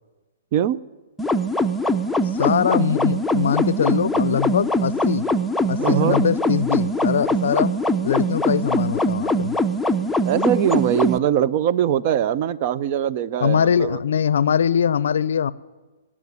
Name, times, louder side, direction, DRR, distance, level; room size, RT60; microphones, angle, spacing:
sound 1, 1.2-11.2, equal, 5° left, 0.5 m, -22 dB
voice 1, 2.3-5.3 5.7-7.7 8.0-9.6 13.4-15.5, left 8 dB, 70° left, 19 dB, 0.5 m, -22 dB
voice 2, 5.8-6.2 10.2-14.0, right 10 dB, 45° right, 17 dB, 0.5 m, -21 dB
18.0 x 7.4 x 9.8 m, 1.2 s
hypercardioid pair, 130°, 0 cm